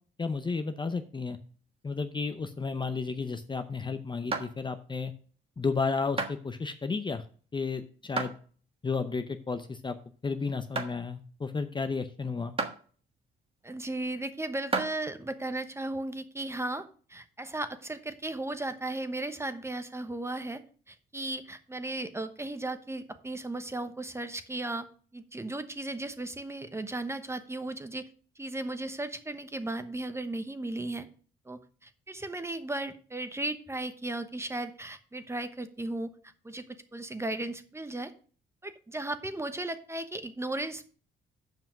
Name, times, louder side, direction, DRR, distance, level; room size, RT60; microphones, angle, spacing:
voice 1, 0.2-1.4 1.8-5.1 5.6-7.2 7.5-8.3 8.8-10.0 10.2-12.5, left 4 dB, 25° left, 8 dB, 0.7 m, -32 dB
sound 1, 2.1-3.7 4.3-4.9 5.4-5.7 6.2-6.4 7.1-7.6 8.2-8.4 8.9-9.0 9.6-9.8 10.2-10.4 10.8-11.0 11.7-11.8 12.6-12.8 13.6-13.7 14.5-15.0, right 4 dB, 30° right, 1.4 m, -33 dB
voice 2, 13.6-20.6 20.9-24.9 25.1-28.1 28.4-31.1 31.5-36.1 36.4-38.1 38.6-40.8, right 2 dB, 15° right, 10 dB, 1.0 m, -36 dB
7.4 x 5.7 x 5.9 m, 0.42 s
cardioid pair, 90°, 20 cm